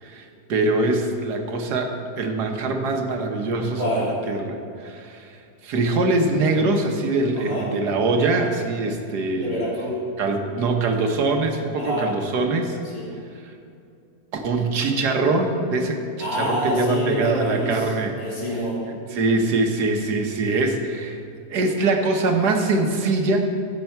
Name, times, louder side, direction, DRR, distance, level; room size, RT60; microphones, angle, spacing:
voice 1, 0.0-1.9 2.2-9.6 10.2-12.8 14.3-18.2 18.9-21.2 21.5-23.5, right 3 dB, 80° right, 4 dB, 1.6 m, -23 dB
voice 2, 3.8-4.1 7.4-7.7 9.4-10.0 11.8-12.1 12.9-13.1 16.2-17.9 18.2-18.8, equal, 65° left, -6 dB, 3.6 m, -26 dB
15.0 x 8.2 x 4.4 m, 2.5 s
omnidirectional pair, 1.7 m